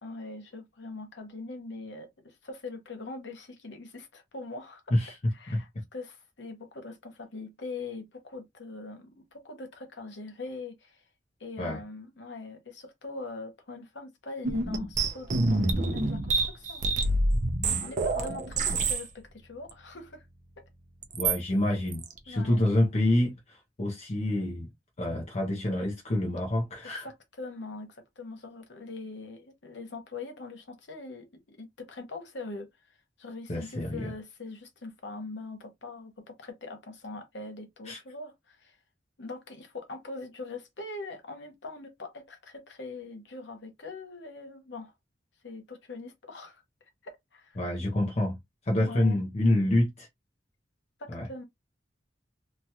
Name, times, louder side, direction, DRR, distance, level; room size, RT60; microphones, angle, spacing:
voice 1, 0.0-4.8 5.3-11.0 11.4-16.8 17.8-20.2 22.3-22.7 27.0-32.7 33.2-38.8 39.2-44.9 45.4-46.6 47.0-47.6 48.8-49.2 51.0-51.4, left 3 dB, 70° left, 0.9 m, -42 dB
sound 1, 14.4-19.1 19.7-19.8 21.0-21.4 21.9-22.2, right 3 dB, 45° right, 0.6 m, -27 dB
voice 2, 21.1-24.7 25.0-27.1 33.5-34.1 37.9-38.0 47.6-48.4 48.7-50.1 51.1-51.3, left 1 dB, 40° left, 0.7 m, -27 dB
3.0 x 2.4 x 2.8 m
head